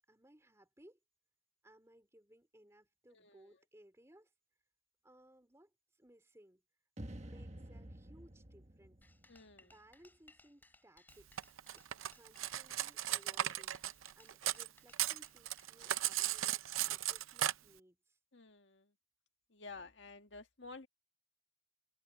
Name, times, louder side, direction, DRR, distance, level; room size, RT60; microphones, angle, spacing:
voice 1, 0.1-1.0 1.6-4.3 5.0-6.6 7.2-9.0 9.4-11.3 11.7-13.8 14.2-18.2, right 1 dB, 15° right, 3.6 m, -63 dB
voice 2, 3.1-3.5 9.3-9.7 18.3-18.9 19.5-20.9, left 3 dB, 65° left, 1.9 m, -52 dB
sound 1, 7.0-10.2, right 1 dB, 35° right, 1.4 m, -51 dB
sound 2, 9.0-16.4, left 2 dB, 10° left, 2.9 m, -66 dB
Cutlery silverware, 11.4-14.7 14.9-17.5, right 12 dB, 85° right, 0.6 m, -36 dB
open air
head